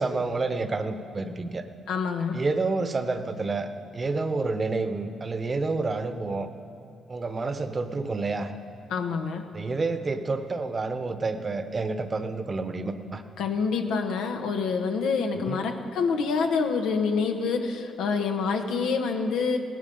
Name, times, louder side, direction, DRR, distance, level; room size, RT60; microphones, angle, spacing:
voice 1, 0.0-1.6 2.3-3.7 3.9-6.5 7.1-8.5 9.5-13.2 15.5-15.6, right 3 dB, 30° right, 9 dB, 1.0 m, -29 dB
voice 2, 1.9-2.4 8.9-9.4 13.4-19.6, left 5 dB, 90° left, 4 dB, 1.2 m, -27 dB
17.0 x 11.5 x 5.5 m, 2.7 s
cardioid pair, 90°, 0 cm